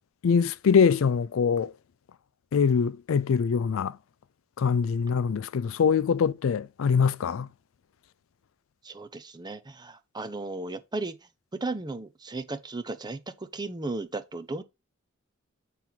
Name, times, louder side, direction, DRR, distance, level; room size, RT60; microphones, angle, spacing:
voice 1, 0.2-1.7 2.5-4.0 4.6-7.5, left 6 dB, 70° left, 0.4 m, -23 dB
voice 2, 8.8-11.2 11.5-14.6, right 2 dB, 20° right, 0.7 m, -35 dB
7.5 x 3.4 x 5.9 m
head